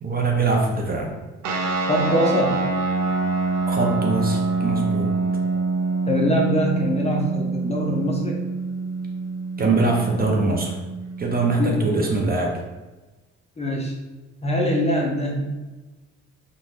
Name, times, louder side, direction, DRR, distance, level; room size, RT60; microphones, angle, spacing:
voice 1, 0.0-1.1 3.7-5.1 9.6-10.7 11.2-12.5, right 3 dB, 30° right, 0 dB, 0.5 m, -22 dB
sound 1, 1.4-12.3, right 3 dB, 80° right, 0.6 m, -26 dB
voice 2, 1.9-2.6 6.1-8.5 11.6-11.9 13.6-13.9 14.4-15.5, equal, 20° left, -1 dB, 0.5 m, -23 dB
2.5 x 2.2 x 3.2 m, 1.2 s
cardioid pair, 90°, 30 cm